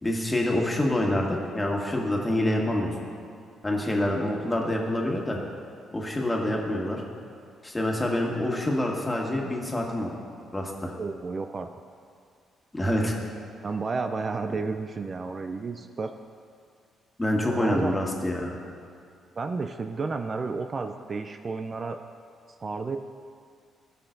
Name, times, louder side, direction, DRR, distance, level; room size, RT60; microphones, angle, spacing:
voice 1, 0.0-2.9 3.6-5.4 5.9-7.0 7.6-10.1 10.5-10.9 12.7-13.1 17.2-18.5, left 1 dB, 20° left, -1 dB, 1.6 m, -26 dB
voice 2, 11.0-11.7 13.6-16.1 17.4-18.0 19.4-22.0 22.6-23.0, right 4 dB, 45° right, 6 dB, 0.4 m, -31 dB
16.5 x 5.6 x 2.6 m, 2.3 s
supercardioid pair, 55°, 0 cm